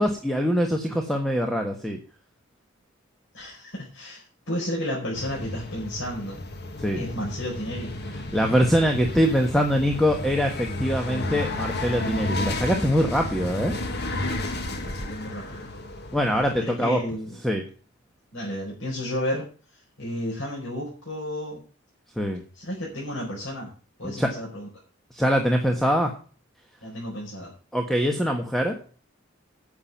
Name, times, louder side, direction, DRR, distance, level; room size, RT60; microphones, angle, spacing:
voice 1, 0.0-2.0 6.8-7.0 8.3-13.7 16.1-17.0 17.4-17.6 22.2-22.4 24.0-24.3 25.1-26.1 27.7-28.8, equal, ahead, 2 dB, 1.3 m, -23 dB
voice 2, 3.3-6.5 6.9-7.9 14.4-15.7 16.6-17.4 18.3-21.6 22.5-23.7 24.0-24.7 26.8-27.5, left 1 dB, 75° left, -4 dB, 5.0 m, -32 dB
sound 1, 5.2-16.6, left 2 dB, 55° left, 1.7 m, -32 dB
9.7 x 7.5 x 7.3 m, 0.37 s
head